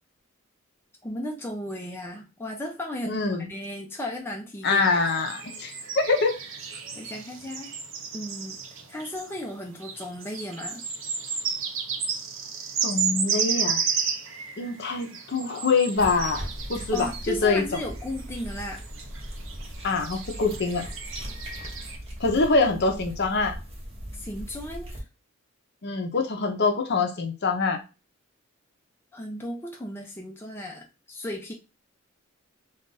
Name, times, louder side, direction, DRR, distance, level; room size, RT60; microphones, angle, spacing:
voice 1, 1.0-4.9 7.0-7.7 8.1-8.6 8.9-10.8 16.9-18.8 24.1-25.0 29.1-31.5, left 1 dB, 10° left, 0.4 m, -35 dB
voice 2, 3.1-3.5 4.6-6.4 12.8-13.8 14.6-17.6 19.8-20.9 22.2-23.6 25.8-27.8, left 4 dB, 50° left, 0.6 m, -25 dB
sound 1, 4.7-22.0, right 6 dB, 65° right, 0.6 m, -33 dB
sound 2, 15.9-25.0, equal, 30° right, 1.0 m, -39 dB
2.5 x 2.3 x 3.8 m
head